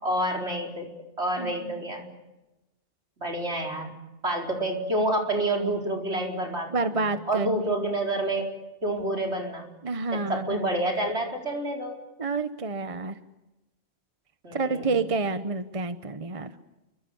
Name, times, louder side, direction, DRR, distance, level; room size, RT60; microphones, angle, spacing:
voice 1, 0.0-0.9 1.2-2.1 3.2-3.9 4.2-8.5 8.8-9.7 10.1-12.0 14.4-15.0, right 1 dB, 65° right, 1 dB, 4.8 m, -28 dB
voice 2, 1.4-1.8 6.7-7.5 9.8-10.6 12.2-13.2 14.5-16.5, right 3 dB, 30° right, 9 dB, 1.0 m, -29 dB
29.5 x 24.0 x 7.1 m, 1.0 s
omnidirectional pair, 1.2 m